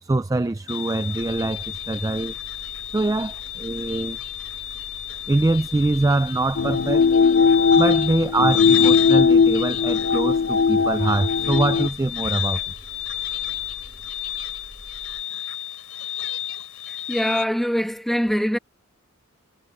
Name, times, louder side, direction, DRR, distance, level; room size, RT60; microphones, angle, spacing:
voice 1, 0.0-2.3 2.9-4.2 5.3-7.1 7.8-12.6, right 2 dB, 15° right, 0.3 m, -24 dB
sound 1, 0.7-17.4, left 12 dB, 70° left, 4.5 m, -31 dB
sound 2, 1.2-15.2, equal, 40° right, 3.4 m, -46 dB
sound 3, 6.6-11.9, left 5 dB, 55° left, 0.6 m, -19 dB
voice 2, 16.9-18.6, equal, ahead, 1.8 m, -23 dB
head